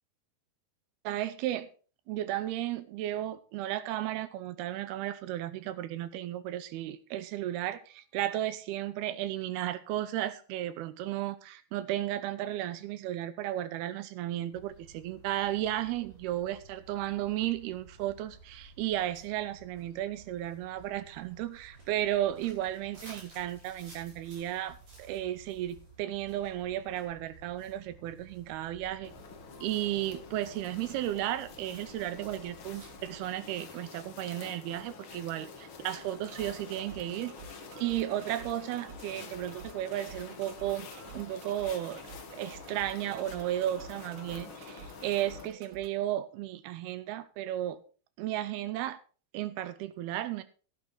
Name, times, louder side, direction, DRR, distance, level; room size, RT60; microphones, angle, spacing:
voice 1, 1.0-1.7 2.1-29.1 29.6-37.3 37.8-40.9 41.1-42.0 42.3-47.8 48.2-49.0 49.3-50.4, right 13 dB, 85° right, 13 dB, 2.8 m, -34 dB
sound 1, 14.5-33.2, right 3 dB, 45° right, 6.8 m, -55 dB
sound 2, 29.0-45.5, left 5 dB, 90° left, 1.1 m, -48 dB
sound 3, 36.3-45.9, right 4 dB, 65° right, 2.7 m, -51 dB
12.0 x 11.5 x 4.0 m, 0.38 s
omnidirectional pair, 4.5 m